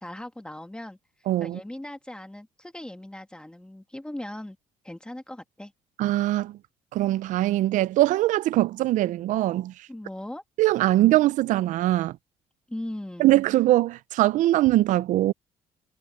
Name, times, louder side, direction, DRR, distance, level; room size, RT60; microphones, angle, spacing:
voice 1, 0.0-4.6 4.8-5.7 9.9-10.4 12.7-13.3, left 1 dB, 5° left, 1.8 m, -39 dB
voice 2, 1.3-1.6 6.0-6.6 6.9-9.7 10.6-12.1 13.2-15.3, right 15 dB, 75° right, 0.5 m, -22 dB
supercardioid pair, 75°, 13 cm